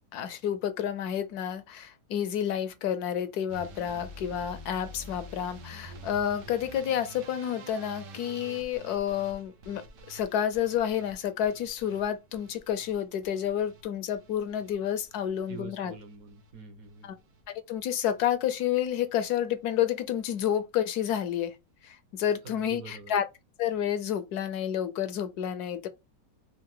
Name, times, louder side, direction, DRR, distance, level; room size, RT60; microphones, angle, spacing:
voice 1, 0.1-9.8 10.1-16.0 17.0-17.2 17.7-21.5 21.8-23.3 23.6-25.9, left 9 dB, 75° left, 1.0 m, -30 dB
sound 1, 3.5-15.6 15.9-16.5 16.8-17.4 17.7-18.0 18.3-18.4 18.6-18.7, right 1 dB, 80° right, 1.5 m, -48 dB
voice 2, 15.5-17.1 22.4-23.1, right 6 dB, 60° right, 1.3 m, -45 dB
4.7 x 2.4 x 3.6 m
omnidirectional pair, 1.8 m